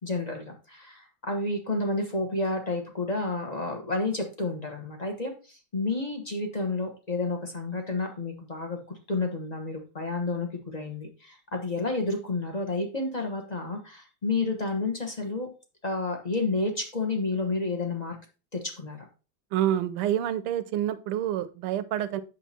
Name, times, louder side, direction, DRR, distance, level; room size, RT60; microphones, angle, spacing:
voice 1, 0.0-8.8 9.1-15.5 15.8-18.2 18.5-19.1, left 3 dB, 30° left, 3 dB, 0.8 m, -30 dB
voice 2, 19.5-22.2, right 11 dB, 85° right, 12 dB, 1.6 m, -27 dB
8.3 x 6.6 x 2.8 m, 0.33 s
omnidirectional pair, 2.4 m